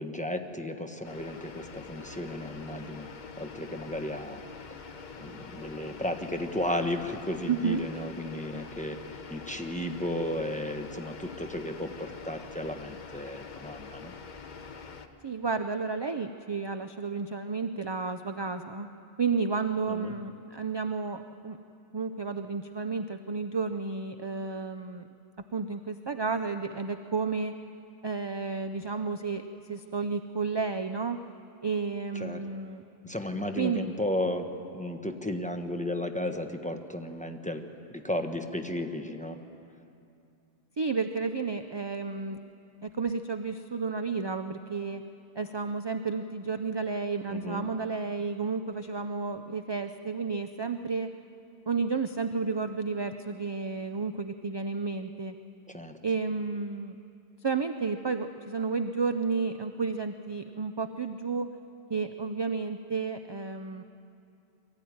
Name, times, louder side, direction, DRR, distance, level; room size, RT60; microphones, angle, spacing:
voice 1, 0.0-4.4 5.2-14.1 19.9-20.1 32.1-32.4 33.0-34.5 34.7-39.4 47.3-47.6 55.7-56.0, left 1 dB, 5° left, 5 dB, 1.0 m, -34 dB
sound 1, 1.0-15.1, left 5 dB, 45° left, 1.0 m, -45 dB
voice 2, 7.5-7.8 15.2-18.9 19.2-21.6 21.9-25.0 25.5-27.5 28.0-31.2 31.6-32.8 33.6-33.8 40.8-42.4 42.8-45.0 45.3-51.1 51.7-55.3 56.0-57.0 57.4-61.5 61.9-63.8, right 4 dB, 35° right, 8 dB, 0.4 m, -31 dB
22.5 x 14.0 x 9.4 m, 2.6 s
omnidirectional pair, 1.1 m